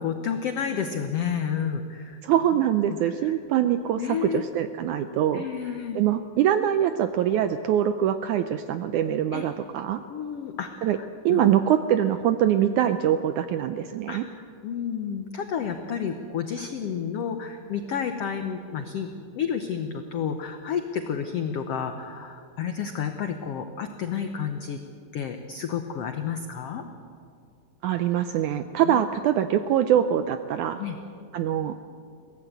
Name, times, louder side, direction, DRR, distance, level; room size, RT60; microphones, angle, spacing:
voice 1, 0.0-2.2 2.9-3.0 4.0-4.4 5.3-6.0 9.3-9.5 10.1-11.4 14.1-14.2 14.6-19.1 19.3-24.8 25.1-26.8 28.8-29.0 30.8-31.0, left 7 dB, 85° left, 6 dB, 1.3 m, -30 dB
voice 2, 2.2-5.5 6.0-10.0 10.8-11.0 11.3-14.3 27.8-30.8 31.3-31.8, right 10 dB, 80° right, 10 dB, 1.8 m, -23 dB
22.5 x 16.5 x 8.1 m, 2.4 s
omnidirectional pair, 4.1 m